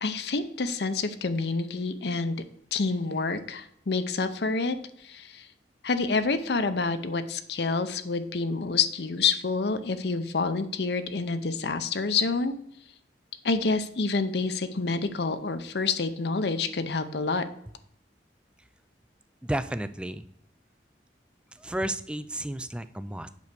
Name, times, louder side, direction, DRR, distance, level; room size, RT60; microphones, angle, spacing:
voice 1, 0.0-2.4 2.7-4.8 5.0-5.5 5.8-12.5 13.4-17.5, left 4 dB, 65° left, 10 dB, 0.7 m, -28 dB
voice 2, 19.4-20.2 21.5-23.3, right 1 dB, 5° right, 12 dB, 0.3 m, -32 dB
8.3 x 4.6 x 6.8 m, 0.71 s
head